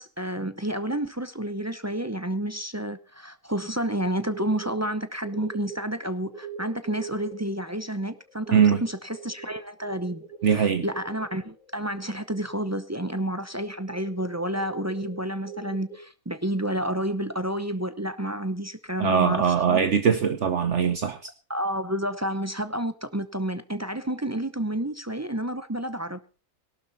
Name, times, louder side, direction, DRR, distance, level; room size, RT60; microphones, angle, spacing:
voice 1, 0.0-19.9 21.5-26.2, right 1 dB, 15° right, 0.5 m, -30 dB
sound 1, 4.3-4.8 5.2-12.7 13.0-13.2 13.4-13.5 13.9-16.0, right 5 dB, 25° left, 2.2 m, -42 dB
voice 2, 8.5-8.8 10.4-10.8 19.0-21.2, right 7 dB, 60° right, 1.3 m, -21 dB
18.5 x 12.0 x 4.1 m
omnidirectional pair, 1.5 m